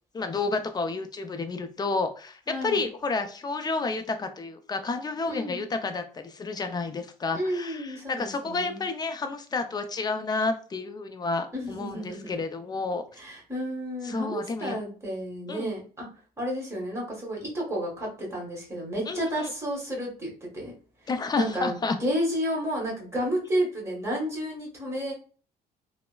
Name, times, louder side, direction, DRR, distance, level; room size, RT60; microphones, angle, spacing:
voice 1, 0.1-13.0 14.0-14.8 15.5-15.7 19.1-19.5 21.1-22.0, left 3 dB, 25° left, 7 dB, 0.4 m, -30 dB
voice 2, 2.5-2.9 5.2-5.6 7.3-8.8 11.5-12.3 13.2-16.1 16.4-20.7 21.0-21.1 21.4-25.1, equal, 15° right, -2 dB, 1.4 m, -31 dB
3.2 x 2.0 x 2.2 m, 0.39 s
cardioid pair, 110°, 17 cm